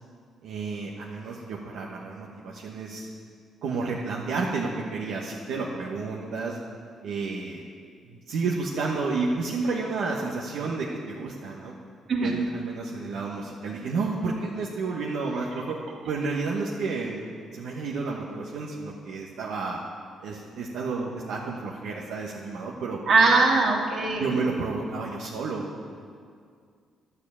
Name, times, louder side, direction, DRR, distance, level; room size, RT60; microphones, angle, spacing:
voice 1, 0.4-3.1 3.6-6.6 7.0-7.6 8.0-11.7 12.2-15.8 16.0-17.2 17.5-19.8 20.2-23.0 24.2-26.1, right 4 dB, 80° right, -3 dB, 1.2 m, -31 dB
voice 2, 23.1-24.4, right 3 dB, 60° right, -1 dB, 2.3 m, -21 dB
11.0 x 7.1 x 8.6 m, 2.1 s
cardioid pair, 90°, 0 cm